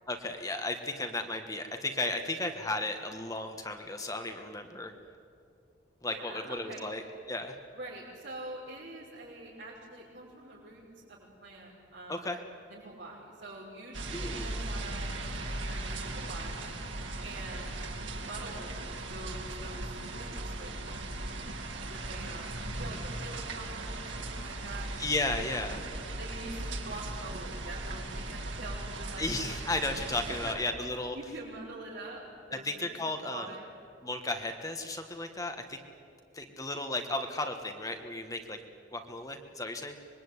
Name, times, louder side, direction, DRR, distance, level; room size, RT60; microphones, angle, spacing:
voice 1, 0.1-4.9 6.0-7.0 7.3-7.6 12.1-12.4 14.1-14.6 25.0-25.8 29.2-31.2 32.5-33.5 34.0-35.8 36.3-38.6 38.9-39.9, left 2 dB, 20° left, 5 dB, 1.4 m, -34 dB
voice 2, 6.1-6.9 7.7-12.2 12.7-16.7 17.2-18.8 19.0-21.1 21.9-24.9 25.5-25.6 26.2-29.4 30.3-30.6 31.1-32.2 32.5-32.9 33.3-33.7, right 2 dB, 60° right, -9 dB, 5.9 m, -45 dB
sound 1, 13.9-30.5, right 2 dB, 75° right, 2.9 m, -38 dB
25.5 x 21.5 x 9.7 m, 2.4 s
head